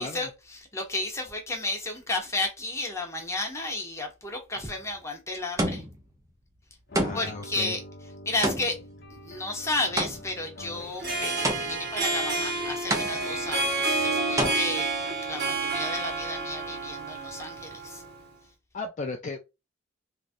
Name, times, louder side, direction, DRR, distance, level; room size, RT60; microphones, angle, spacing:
voice 1, 0.0-5.8 7.1-7.8 8.2-8.8 9.1-14.9 15.3-18.0, left 2 dB, 15° left, 0.9 m, -33 dB
sound 1, 4.6-5.0 5.6-6.1 6.9-7.5 8.4-10.5 11.4-12.0 12.9-13.5 14.4-14.5, right 1 dB, 15° right, 0.7 m, -29 dB
sound 2, 6.9-14.9, left 1 dB, 55° left, 0.8 m, -46 dB
voice 2, 7.0-7.8 18.7-19.4, left 3 dB, 40° left, 0.4 m, -35 dB
Harp, 10.9-18.2, right 3 dB, 55° right, 1.1 m, -29 dB
3.2 x 2.4 x 2.5 m
head